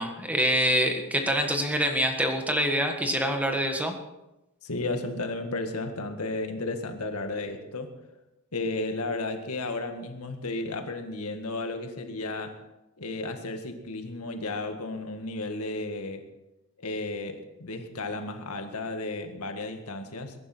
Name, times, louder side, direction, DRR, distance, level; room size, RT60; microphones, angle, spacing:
voice 1, 0.0-3.9, equal, 5° right, 4 dB, 1.6 m, -25 dB
voice 2, 4.6-7.9 8.5-12.5 13.0-16.2 16.8-20.3, left 2 dB, 80° left, 5 dB, 1.9 m, -33 dB
21.5 x 11.0 x 4.4 m, 0.94 s
head